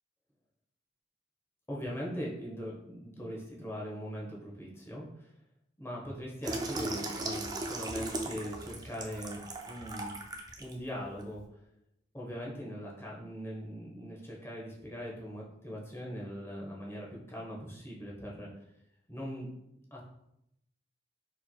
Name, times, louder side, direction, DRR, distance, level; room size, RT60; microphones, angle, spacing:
voice 1, 1.7-5.3 5.8-9.4 9.6-10.2 10.6-11.4 12.1-18.5 19.1-19.5 19.9-20.1, equal, 15° left, -3 dB, 1.0 m, -41 dB
Water tap faucet / Sink (filling or washing), 6.4-10.7 11.2-11.4, right 2 dB, 20° right, 0.4 m, -37 dB
4.5 x 4.3 x 2.3 m, 0.80 s
head